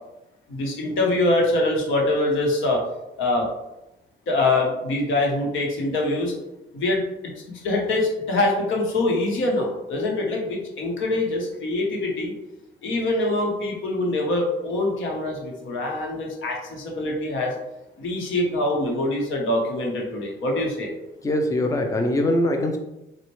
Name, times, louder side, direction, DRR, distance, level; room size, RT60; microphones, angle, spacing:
voice 1, 0.5-2.8 3.2-3.5 4.3-6.3 6.7-12.3 12.8-17.5 18.0-20.9, left 2 dB, 80° left, 0 dB, 0.9 m, -24 dB
voice 2, 21.2-22.8, left 1 dB, 15° left, 4 dB, 0.4 m, -22 dB
4.0 x 2.1 x 3.0 m, 0.93 s
cardioid pair, 75°, 20 cm